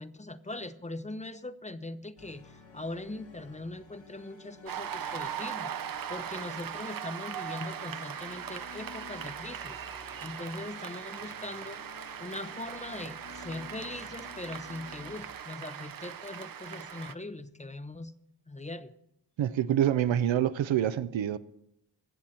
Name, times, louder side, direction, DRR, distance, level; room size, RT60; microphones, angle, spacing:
voice 1, 0.0-9.8 10.2-11.8 12.2-18.2 18.5-18.9, left 2 dB, 15° left, 0.5 m, -41 dB
sound 1, 2.2-15.2, left 4 dB, 75° left, 1.7 m, -53 dB
Cheering / Applause, 4.7-17.1, right 8 dB, 50° right, 0.6 m, -40 dB
voice 2, 19.4-21.4, right 10 dB, 90° right, 0.6 m, -26 dB
22.0 x 7.7 x 4.3 m
wide cardioid pair, 90°, 45 cm